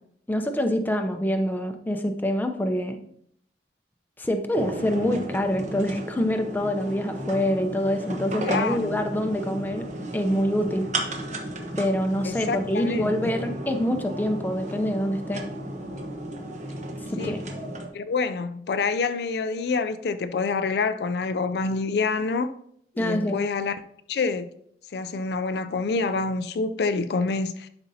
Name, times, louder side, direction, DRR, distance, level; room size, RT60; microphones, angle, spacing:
voice 1, 0.3-3.0 4.2-9.9 10.1-10.9 11.8-15.4 17.1-17.4 23.0-23.4, equal, 10° left, 0.6 m, -26 dB
sound 1, 4.5-17.9, right 1 dB, 40° right, 1.1 m, -34 dB
voice 2, 8.4-9.0 12.2-13.1 17.2-17.4 17.9-22.5 23.0-23.8 24.1-24.5 24.9-27.7, left 4 dB, 65° left, 0.4 m, -27 dB
11.0 x 5.3 x 2.8 m
head